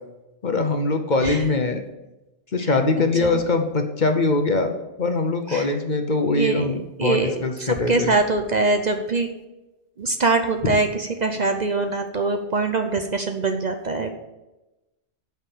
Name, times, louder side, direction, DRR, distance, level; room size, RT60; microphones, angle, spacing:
voice 1, 0.4-1.8 2.5-8.1 10.6-10.7, left 3 dB, 45° left, 5 dB, 1.0 m, -22 dB
voice 2, 6.3-6.7 7.0-7.3 7.6-9.3 10.0-14.1, right 3 dB, 45° right, 5 dB, 0.8 m, -23 dB
8.6 x 5.9 x 7.2 m, 1.0 s
omnidirectional pair, 1.2 m